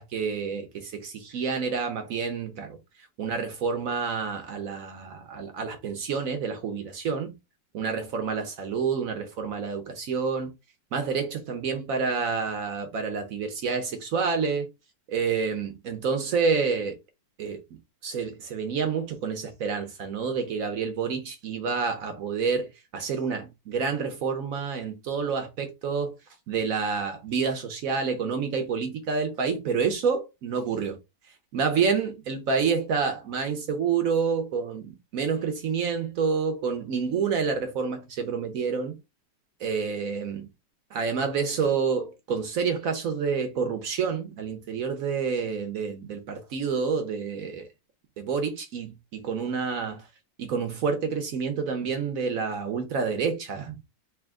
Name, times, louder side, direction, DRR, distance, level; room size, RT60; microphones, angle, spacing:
voice 1, 0.0-2.8 3.2-7.3 7.7-10.5 10.9-14.7 15.1-17.0 17.4-26.2 26.5-31.0 31.5-39.0 39.6-40.5 40.9-47.7 48.2-50.1 50.4-53.8, right 5 dB, 65° right, 0.9 m, -28 dB
3.4 x 2.8 x 3.5 m
omnidirectional pair, 2.0 m